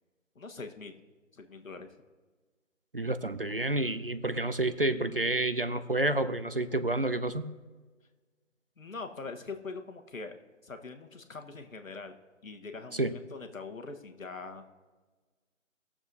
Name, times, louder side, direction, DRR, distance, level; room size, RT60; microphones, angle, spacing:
voice 1, 0.3-0.9 1.3-1.9 8.8-10.3 10.6-12.1 12.4-14.6, left 4 dB, 85° left, 6 dB, 1.4 m, -42 dB
voice 2, 2.9-7.5 12.9-13.2, right 2 dB, 45° right, 12 dB, 0.4 m, -29 dB
20.0 x 7.0 x 2.7 m, 1.3 s
figure-of-eight pair, 170°, 40 cm